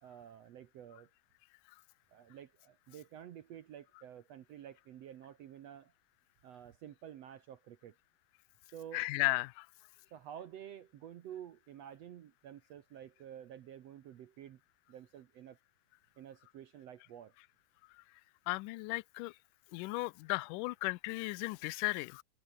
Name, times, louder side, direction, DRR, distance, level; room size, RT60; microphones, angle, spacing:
voice 1, 0.0-1.1 2.1-5.9 6.4-8.0 8.7-9.1 10.1-14.6 14.9-15.6 16.2-17.3, right 10 dB, 65° right, 1.9 m, -50 dB
voice 2, 8.9-9.7 18.5-19.3 19.7-22.2, left 23 dB, 85° left, 2.1 m, -35 dB
omnidirectional pair, 3.8 m